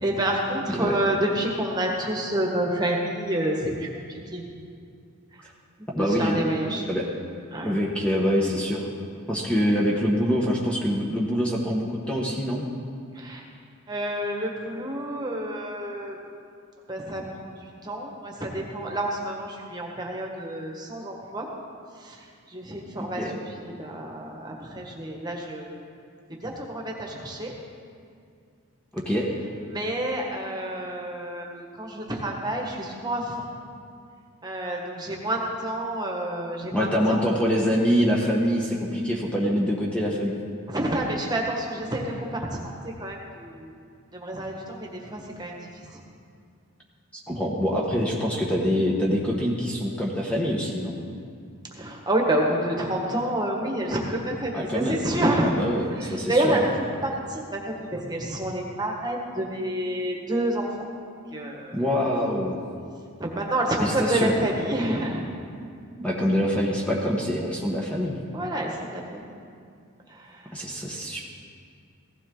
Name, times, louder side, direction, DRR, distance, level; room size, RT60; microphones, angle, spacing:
voice 1, 0.0-3.9 4.3-4.4 5.8-6.9 7.5-7.7 13.2-13.4 13.9-16.2 16.9-17.2 17.6-21.5 22.0-22.2 22.5-23.2 23.6-25.7 26.4-27.5 29.7-33.4 34.4-37.3 40.7-43.7 44.1-46.0 51.7-55.5 56.3-56.7 57.0-60.9 61.3-61.8 63.2-65.2 68.3-69.4 70.1-70.4, right 1 dB, 20° right, 0 dB, 1.6 m, -28 dB
voice 2, 5.9-6.4 6.9-7.0 7.6-8.9 9.3-12.7 23.0-23.4 28.9-29.3 36.7-40.3 47.3-51.0 54.5-55.0 55.4-56.6 61.7-62.5 63.8-64.3 66.0-68.2 70.5-71.2, equal, 5° left, -3 dB, 1.2 m, -25 dB
16.5 x 15.5 x 3.9 m, 2.3 s
head